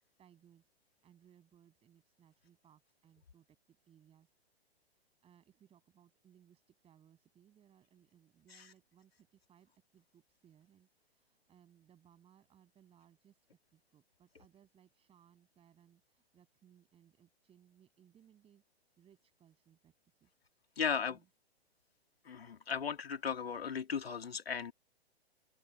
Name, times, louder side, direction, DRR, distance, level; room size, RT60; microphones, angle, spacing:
voice 1, 0.2-4.3 4.9-13.5 13.7-18.6 19.0-20.4 20.7-20.8 21.1-21.3, right 9 dB, 20° right, 7.8 m, -66 dB
voice 2, 20.8-21.2 22.2-24.7, left 7 dB, 65° left, 2.7 m, -36 dB
open air
figure-of-eight pair, 115°, 32 cm